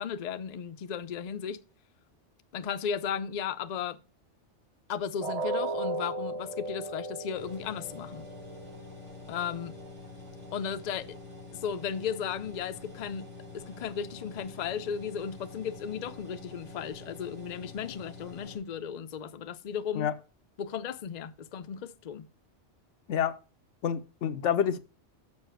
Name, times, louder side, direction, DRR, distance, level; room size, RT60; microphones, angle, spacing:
voice 1, 0.0-1.6 2.5-4.0 4.9-8.3 9.3-9.8 10.5-11.2 11.5-13.3 13.5-20.1 20.6-22.3, left 7 dB, 50° left, 0.5 m, -35 dB
sound 1, 5.2-11.2 11.6-11.8 12.2-12.3, right 2 dB, 35° right, 1.1 m, -37 dB
sound 2, 7.3-18.6, left 3 dB, 90° right, 3.7 m, -47 dB
voice 2, 23.8-24.8, left 8 dB, 85° left, 1.0 m, -28 dB
7.1 x 5.5 x 6.3 m
omnidirectional pair, 1.2 m